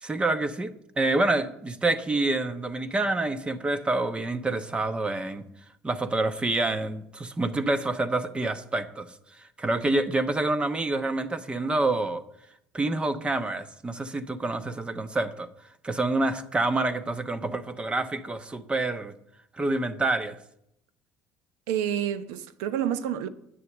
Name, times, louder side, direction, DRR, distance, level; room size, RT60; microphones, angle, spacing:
voice 1, 0.0-5.4 5.8-9.1 9.6-12.2 12.7-15.5 15.8-19.1 19.5-20.4, right 2 dB, 20° right, 1.0 m, -27 dB
voice 2, 21.7-23.3, right 10 dB, 85° right, 0.8 m, -28 dB
9.5 x 6.8 x 8.7 m
supercardioid pair, 95°, 5 cm